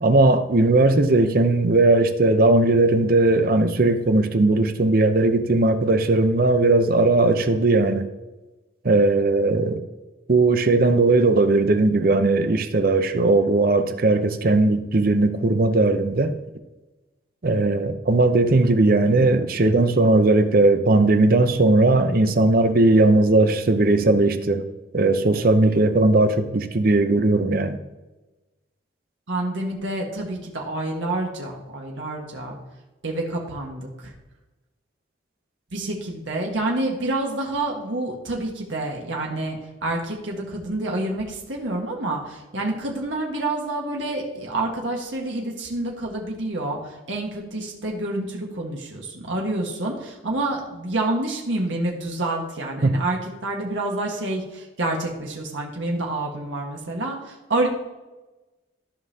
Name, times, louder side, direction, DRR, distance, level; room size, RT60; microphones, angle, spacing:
voice 1, 0.0-8.1 8.8-9.8 10.3-16.3 17.4-24.6 24.9-27.8 52.8-52.9, right 2 dB, 50° right, 0.7 m, -18 dB
voice 2, 29.3-32.5 33.0-34.1 35.7-57.7, right 2 dB, 90° right, 1.5 m, -28 dB
14.5 x 5.4 x 2.8 m
head